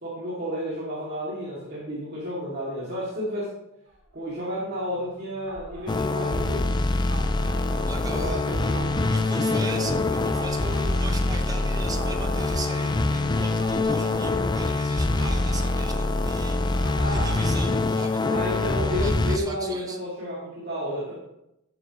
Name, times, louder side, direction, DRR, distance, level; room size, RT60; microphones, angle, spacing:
voice 1, 0.0-3.5 4.1-6.8 8.1-9.0 9.3-9.9 17.0-17.3 18.3-21.1, equal, 50° right, -6 dB, 2.5 m, -32 dB
sound 1, 3.9-18.3, right 1 dB, 70° right, 3.3 m, -41 dB
sound 2, 5.9-19.4, left 2 dB, 20° left, 0.5 m, -25 dB
voice 2, 7.3-8.7 9.1-18.2 19.0-20.0, right 2 dB, 20° right, 4 dB, 1.1 m, -39 dB
12.5 x 8.3 x 3.1 m, 0.85 s
head